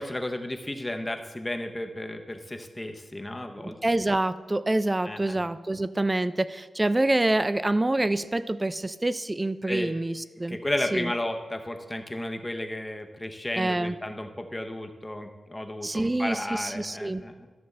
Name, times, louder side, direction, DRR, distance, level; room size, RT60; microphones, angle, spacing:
voice 1, 0.0-3.8 5.0-5.4 9.7-9.9 10.5-17.5, left 1 dB, 15° left, 5 dB, 0.7 m, -33 dB
voice 2, 3.6-10.6 10.9-11.1 13.6-13.9 15.8-17.2, right 2 dB, 15° right, 13 dB, 0.3 m, -26 dB
12.5 x 6.8 x 3.2 m, 1.3 s
wide cardioid pair, 120°, 0 cm